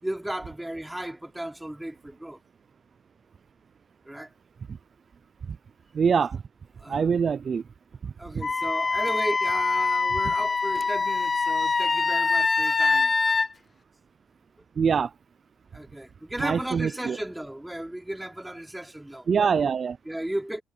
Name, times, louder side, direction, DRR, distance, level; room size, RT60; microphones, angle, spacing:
voice 1, 0.0-2.4 4.0-4.3 6.8-7.2 8.2-13.1 15.7-19.3 20.0-20.6, right 1 dB, 5° right, 3.3 m, -35 dB
voice 2, 5.9-6.4 6.9-7.6 8.0-8.4 14.8-15.1 16.4-17.2 19.3-20.0, right 6 dB, 45° right, 0.5 m, -24 dB
Wind instrument woodwind instrument, 8.4-13.5, left 4 dB, 30° left, 0.6 m, -24 dB
cardioid pair, 90°, 0 cm